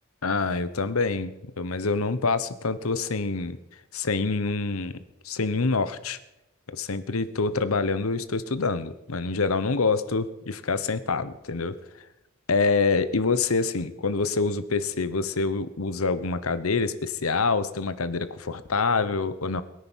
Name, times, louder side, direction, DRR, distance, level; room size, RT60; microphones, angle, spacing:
voice 1, 0.2-3.6 3.9-6.2 6.7-11.8 12.5-19.6, left 4 dB, 85° left, 14 dB, 1.0 m, -26 dB
21.0 x 9.7 x 6.3 m, 0.94 s
head